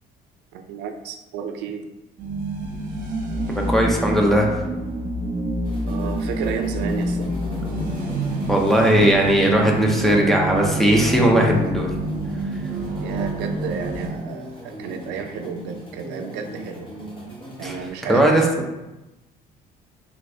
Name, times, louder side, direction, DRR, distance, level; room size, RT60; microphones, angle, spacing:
voice 1, 0.5-1.9 5.9-7.3 13.0-16.9 17.6-18.3, right 6 dB, 85° right, 6 dB, 0.4 m, -32 dB
sound 1, 2.2-14.1, right 1 dB, 55° right, 0.8 m, -27 dB
voice 2, 3.7-4.6 8.5-11.9 17.6-17.8 18.1-18.4, right 1 dB, ahead, -1 dB, 0.6 m, -18 dB
sound 2, 5.6-17.9, right 1 dB, 30° left, 0.9 m, -39 dB
3.5 x 2.9 x 2.6 m, 0.99 s
cardioid pair, 110°, 17 cm